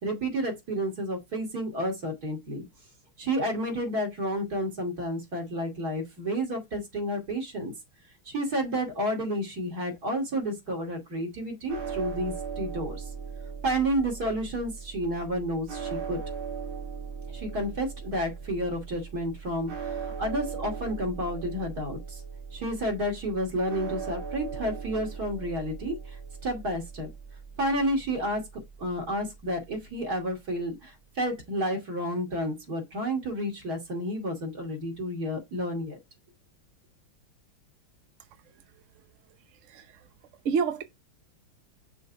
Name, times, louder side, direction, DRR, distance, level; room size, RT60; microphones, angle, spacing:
voice 1, 0.0-2.6 3.2-7.7 8.3-13.1 13.6-16.2 17.3-22.2 22.5-26.2 26.4-27.1 27.6-28.4 28.8-36.0, equal, 45° right, 2.9 m, -31 dB
sound 1, 11.7-29.9, right 6 dB, 90° right, 2.8 m, -39 dB
voice 2, 39.6-40.1 40.4-40.8, right 6 dB, 70° right, 0.7 m, -28 dB
6.4 x 3.5 x 4.6 m
omnidirectional pair, 2.3 m